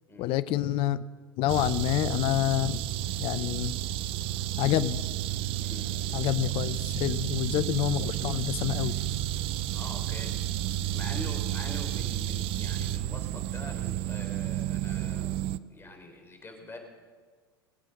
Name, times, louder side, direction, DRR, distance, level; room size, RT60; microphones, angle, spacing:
voice 1, 0.2-1.0 1.4-2.8 3.2-3.8 4.6-5.1 6.1-9.0, left 14 dB, 45° left, 15 dB, 0.6 m, -28 dB
sound 1, 1.5-15.6, right 12 dB, 45° right, 0.5 m, -31 dB
voice 2, 5.6-6.3 9.7-10.3 10.7-16.8, left 2 dB, 20° left, 4 dB, 3.7 m, -45 dB
22.0 x 8.2 x 6.4 m, 1.5 s
hypercardioid pair, 85°, 13 cm